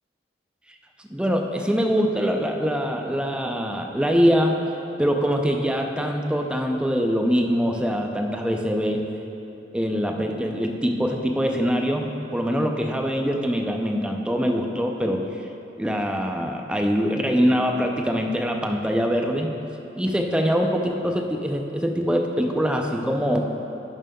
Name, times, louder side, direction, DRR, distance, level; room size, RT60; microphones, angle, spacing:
voice 1, 1.1-4.7 5.0-9.1 9.7-15.2 15.8-19.6 19.9-23.4, equal, 5° right, 3 dB, 0.4 m, -23 dB
10.5 x 7.2 x 2.2 m, 2.9 s
head